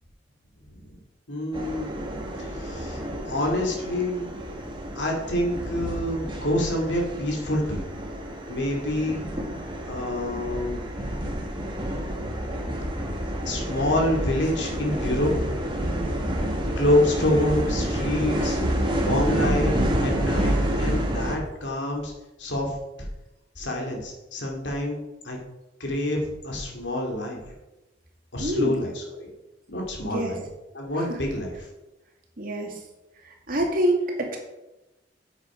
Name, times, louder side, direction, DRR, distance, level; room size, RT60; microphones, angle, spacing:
voice 1, 1.3-2.0 2.4-4.3 4.9-7.8 8.5-9.2 9.9-10.8 13.4-15.3 16.8-18.6 19.0-19.7 20.0-22.1 22.4-23.1 23.6-25.0 25.2-25.4 25.8-27.4 28.3-29.3 29.7-30.4 30.7-31.5, left 1 dB, 75° left, 0 dB, 2.5 m, -27 dB
sound 1, 1.5-21.4, equal, 30° right, 1.8 m, -29 dB
voice 2, 28.4-28.8 30.0-30.4 31.0-31.2 32.4-32.8 33.5-34.4, right 1 dB, 50° right, 1 dB, 2.1 m, -26 dB
9.2 x 7.2 x 5.1 m, 1.0 s
head